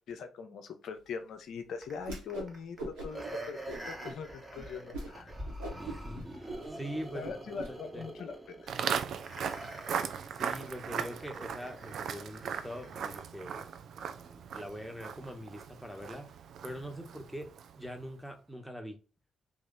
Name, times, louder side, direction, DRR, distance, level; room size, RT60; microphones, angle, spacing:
voice 1, 0.0-3.6 3.9-5.3 7.1-8.7, left 5 dB, 65° left, 0.5 m, -42 dB
sound 1, 1.8-13.3 13.7-13.8, right 1 dB, 25° right, 1.2 m, -45 dB
Whoosh swoosh swish, 2.0-2.5 2.8-3.3 3.7-4.2 4.5-4.6 4.9-5.1 5.4-7.7, right 2 dB, 80° right, 1.1 m, -41 dB
voice 2, 5.7-8.0 10.3-13.6 14.0-16.3 16.6-19.0, equal, ahead, 1.0 m, -43 dB
Walk footsteps, 8.7-17.9, right 7 dB, 65° right, 0.3 m, -38 dB
3.0 x 2.4 x 3.7 m
hypercardioid pair, 40°, 0 cm